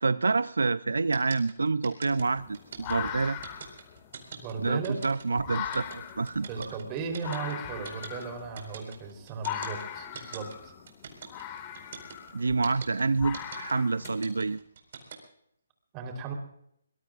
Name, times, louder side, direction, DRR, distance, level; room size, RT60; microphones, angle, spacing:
voice 1, 0.0-3.4 4.6-6.8 12.3-14.6, right 4 dB, 80° right, 16 dB, 0.5 m, -28 dB
sound 1, 1.1-15.1, right 7 dB, 55° right, 4.5 m, -43 dB
sound 2, 2.2-14.5, left 10 dB, 30° left, 1.8 m, -40 dB
voice 2, 4.3-5.0 6.5-10.7 15.9-16.3, right 5 dB, 25° right, 4 dB, 3.7 m, -36 dB
24.5 x 21.0 x 2.5 m, 0.72 s
figure-of-eight pair, 150°, 0 cm